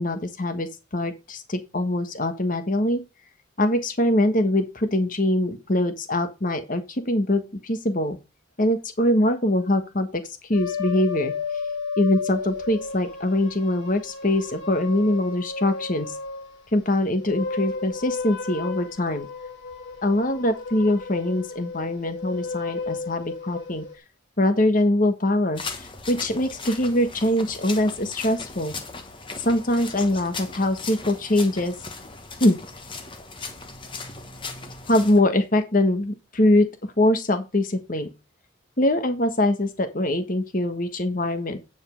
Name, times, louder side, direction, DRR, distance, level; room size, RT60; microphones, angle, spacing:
voice 1, 0.0-3.0 3.6-8.2 8.6-10.2 10.5-11.3 12.0-16.1 16.7-19.3 20.0-23.8 24.4-28.7 29.4-31.7 32.4-32.6 34.9-36.7 37.0-38.1 38.8-41.6, left 1 dB, 40° left, 9 dB, 1.3 m, -23 dB
sound 1, 10.5-16.6 17.1-24.0, left 4 dB, 70° left, 3.3 m, -33 dB
sound 2, 25.6-35.2, left 4 dB, 25° left, 1.3 m, -38 dB
9.3 x 5.4 x 5.2 m, 0.27 s
head